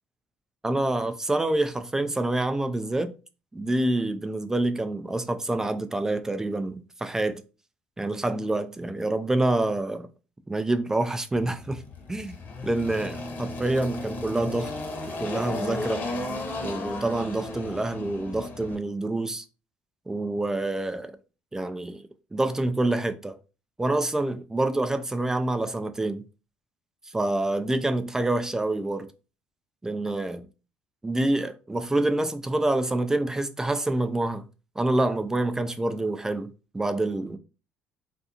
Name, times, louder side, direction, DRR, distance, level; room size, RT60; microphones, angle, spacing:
voice 1, 0.6-3.1 3.5-7.4 8.0-10.1 10.5-11.8 12.1-12.4 12.6-14.7 15.2-16.1 16.6-19.4 20.1-21.2 21.5-22.0 22.3-23.4 23.8-26.2 27.1-29.1 29.8-30.5 31.0-34.5 34.8-37.4, right 2 dB, 15° right, 0.3 m, -27 dB
Engine, 11.3-18.8, left 2 dB, 50° left, 0.9 m, -35 dB
2.5 x 2.4 x 2.7 m
supercardioid pair, 75°, 4 cm